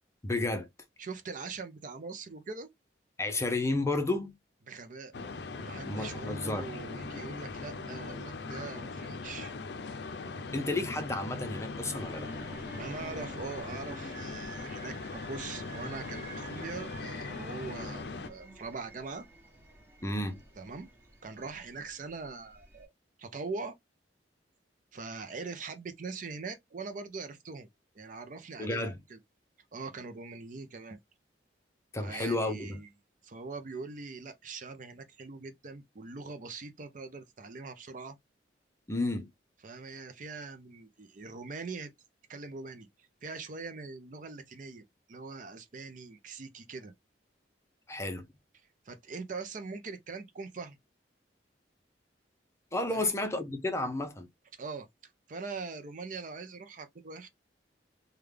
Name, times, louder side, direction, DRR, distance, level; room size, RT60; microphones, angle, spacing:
voice 1, 0.2-0.7 3.2-4.3 5.9-6.7 10.5-12.3 20.0-20.4 28.6-29.0 31.9-32.8 38.9-39.3 47.9-48.3 52.7-54.3, left 2 dB, 15° left, 0.6 m, -32 dB
voice 2, 1.0-2.7 4.7-5.1 5.6-9.5 12.8-19.2 20.6-20.9 21.2-22.9 23.2-23.7 24.9-27.7 27.9-29.2 29.7-31.0 32.0-32.9 33.2-38.2 39.6-41.9 42.3-44.8 45.1-46.9 48.8-50.8 52.9-53.2 54.5-54.9 55.3-57.3, right 4 dB, 45° right, 0.5 m, -42 dB
sound 1, 5.1-18.3, left 3 dB, 65° left, 0.5 m, -40 dB
sound 2, 11.8-22.9, right 3 dB, 15° right, 1.1 m, -50 dB
3.5 x 2.3 x 3.2 m
head